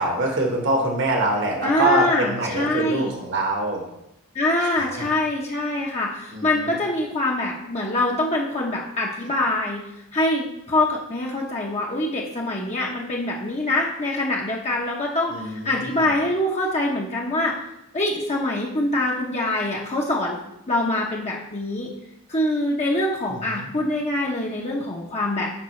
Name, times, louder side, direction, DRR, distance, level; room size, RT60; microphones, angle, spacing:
voice 1, 0.0-3.8 4.6-5.2 6.3-6.8 15.3-16.1 23.3-23.7, right 2 dB, 55° right, 1 dB, 1.3 m, -25 dB
voice 2, 1.6-3.1 4.3-9.8 10.1-17.5 17.9-20.4 20.7-21.9 22.3-25.5, left 1 dB, 30° left, -3 dB, 0.8 m, -24 dB
11.5 x 5.4 x 3.2 m, 0.87 s
head